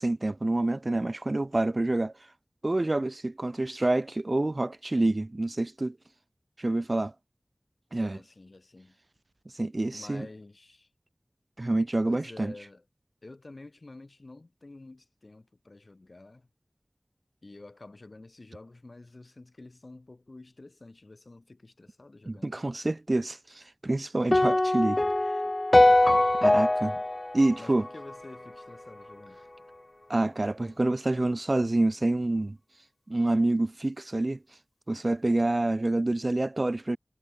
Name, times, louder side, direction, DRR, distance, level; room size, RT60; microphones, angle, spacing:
voice 1, 0.0-2.1 2.6-6.0 6.6-7.1 7.9-8.2 9.5-10.3 11.6-12.5 22.3-25.0 26.4-27.0 27.3-27.9 30.1-32.6 33.1-34.4 34.9-37.0, right 2 dB, 50° right, 0.8 m, -27 dB
voice 2, 7.9-9.0 9.9-10.9 12.1-12.8 13.2-16.5 17.4-22.8 27.6-29.4, left 2 dB, 65° left, 2.6 m, -49 dB
sound 1, 24.3-28.6, left 1 dB, 40° left, 0.5 m, -23 dB
wide cardioid pair, 55°, 0 cm